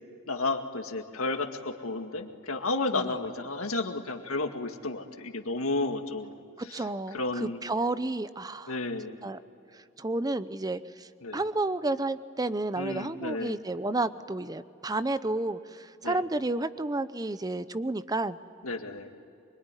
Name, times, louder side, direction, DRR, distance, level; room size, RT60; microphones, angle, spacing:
voice 1, 0.3-6.4 6.6-7.6 8.7-9.2 11.2-11.4 12.8-13.6 16.0-16.2 18.6-19.1, left 2 dB, 70° left, 5 dB, 2.1 m, -32 dB
voice 2, 6.7-8.7 9.2-9.4 10.0-11.1 11.3-18.4, right 2 dB, 15° right, 13 dB, 0.7 m, -31 dB
25.0 x 23.5 x 9.8 m, 2.6 s
head